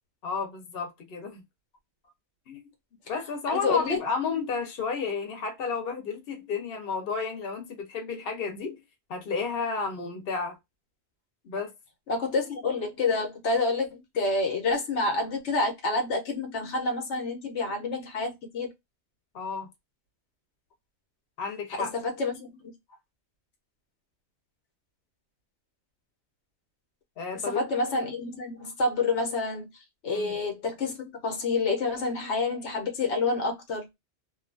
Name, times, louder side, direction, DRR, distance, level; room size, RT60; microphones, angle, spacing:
voice 1, 0.2-1.4 2.5-2.7 3.1-8.8 9.1-10.6 11.4-11.7 19.3-19.7 21.4-21.9 27.2-27.6 30.0-30.3, left 5 dB, 60° left, 1.0 m, -32 dB
voice 2, 3.5-4.0 12.1-18.7 21.9-22.5 27.4-29.7 30.0-33.9, left 3 dB, 85° left, 1.2 m, -28 dB
2.7 x 2.3 x 2.5 m
omnidirectional pair, 1.1 m